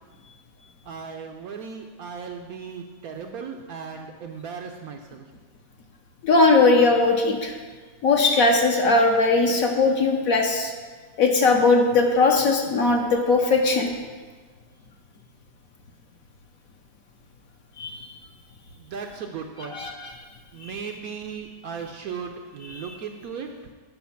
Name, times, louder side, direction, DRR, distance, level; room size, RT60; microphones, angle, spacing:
voice 1, 0.9-5.2 18.9-19.8 20.5-23.5, right 6 dB, 70° right, 4 dB, 0.9 m, -36 dB
voice 2, 6.2-7.5 8.0-10.7 11.2-13.9 17.8-18.1 19.7-20.1 20.6-20.9 22.6-22.9, left 3 dB, 60° left, 2 dB, 1.1 m, -20 dB
9.3 x 5.2 x 5.8 m, 1.4 s
omnidirectional pair, 2.0 m